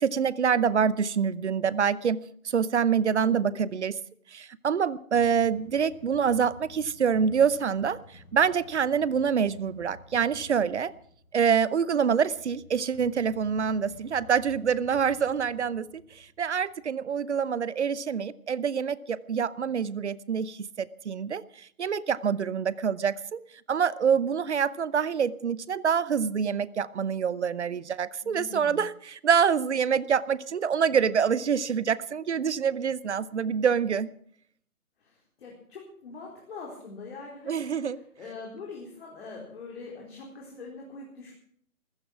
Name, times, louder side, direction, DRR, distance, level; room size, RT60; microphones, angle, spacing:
voice 1, 0.0-4.0 4.3-10.9 11.3-23.4 23.7-34.1 37.5-38.0, right 7 dB, 50° right, 19 dB, 0.7 m, -26 dB
sound 1, 5.1-17.0, left 2 dB, 90° left, 4.2 m, -53 dB
voice 2, 28.2-28.8 35.0-41.3, left 3 dB, 45° left, -1 dB, 4.3 m, -43 dB
15.0 x 14.0 x 6.0 m, 0.62 s
figure-of-eight pair, 155°, 43 cm